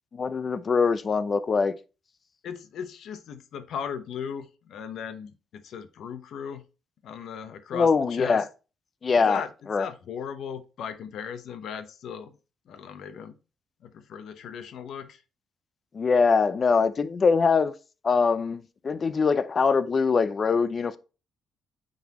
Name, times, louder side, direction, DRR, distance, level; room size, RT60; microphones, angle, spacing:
voice 1, 0.1-1.7 7.7-8.4 9.0-9.4 9.7-9.9 15.9-17.7 18.0-21.0, left 5 dB, 40° left, 0.6 m, -23 dB
voice 2, 2.4-6.6 7.0-8.4 9.3-9.5 9.8-12.3 12.7-13.3 13.8-15.2, left 7 dB, 70° left, 0.9 m, -37 dB
9.1 x 4.1 x 3.0 m
cardioid pair, 90°, 0 cm